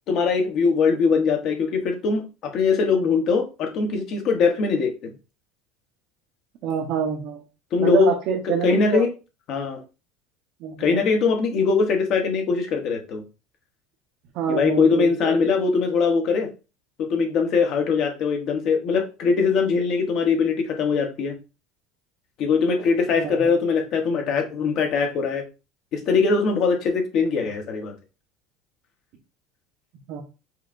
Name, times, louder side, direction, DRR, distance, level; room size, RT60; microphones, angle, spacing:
voice 1, 0.1-4.9 7.7-8.1 8.5-9.1 9.5-9.8 10.8-13.2 14.5-16.5 17.0-21.4 22.4-25.4 25.9-27.9, left 5 dB, 40° left, 4 dB, 1.1 m, -21 dB
voice 2, 6.6-7.4 7.8-9.0 10.6-11.0 14.3-15.4 23.1-23.5 30.1-30.2, right 7 dB, 50° right, -1 dB, 0.8 m, -26 dB
5.6 x 3.2 x 2.6 m, 0.29 s
cardioid pair, 170°, 0 cm